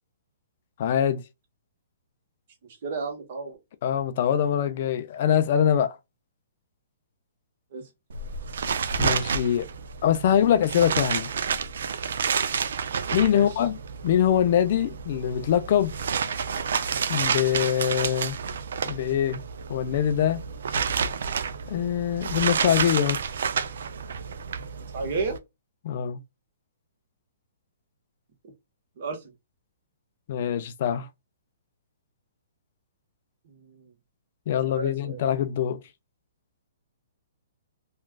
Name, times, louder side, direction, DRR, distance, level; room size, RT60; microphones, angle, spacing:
voice 1, 0.8-1.2 3.8-6.0 9.0-9.7 10.0-11.3 13.1-13.8 14.0-15.9 17.1-18.4 18.9-19.4 19.7-20.4 21.7-23.2 25.8-26.2 30.3-31.1 34.5-35.8, left 9 dB, 45° left, 0.3 m, -23 dB
voice 2, 2.6-3.6 7.7-7.9 13.3-13.5 24.9-25.4 29.0-29.3 33.4-33.9 34.7-35.2, right 4 dB, 45° right, 1.1 m, -33 dB
sound 1, 8.1-25.4, right 6 dB, 70° right, 0.4 m, -30 dB
3.1 x 2.3 x 2.2 m
hypercardioid pair, 160°, 0 cm